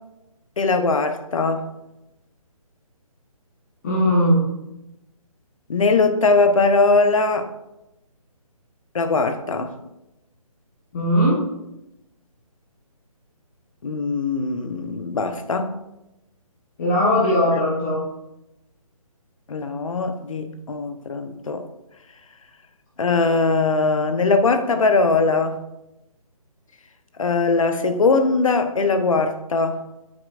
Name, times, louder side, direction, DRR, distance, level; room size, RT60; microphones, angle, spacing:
voice 1, 0.6-1.7 5.7-7.5 8.9-9.7 13.8-15.8 19.5-21.6 23.0-25.6 27.2-29.8, left 3 dB, 60° left, 1.0 m, -20 dB
voice 2, 3.8-4.5 10.9-11.5 16.8-18.0, equal, 30° left, 1.4 m, -19 dB
9.0 x 7.6 x 2.5 m
hypercardioid pair, 165°, 19 cm